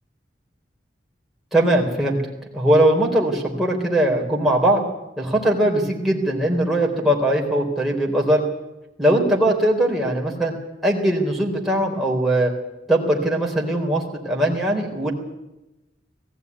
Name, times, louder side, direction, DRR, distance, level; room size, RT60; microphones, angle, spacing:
voice 1, 1.5-2.2 2.5-4.8 5.2-8.4 9.0-10.5 10.8-12.5 12.9-15.1, right 1 dB, ahead, -3 dB, 4.0 m, -20 dB
19.5 x 15.5 x 9.6 m, 0.97 s
head